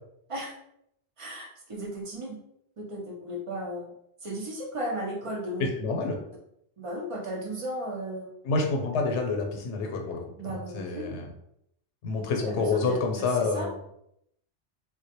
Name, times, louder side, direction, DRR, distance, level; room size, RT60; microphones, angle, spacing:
voice 1, 1.2-2.4 2.8-3.9 4.2-5.7 6.8-8.3 10.4-11.2 12.3-13.7, right 1 dB, 45° right, -1 dB, 0.4 m, -35 dB
voice 2, 5.8-6.2 8.4-10.2 10.7-11.3 12.0-13.7, left 3 dB, 90° left, 3 dB, 0.9 m, -28 dB
2.1 x 2.1 x 2.8 m, 0.76 s
omnidirectional pair, 1.2 m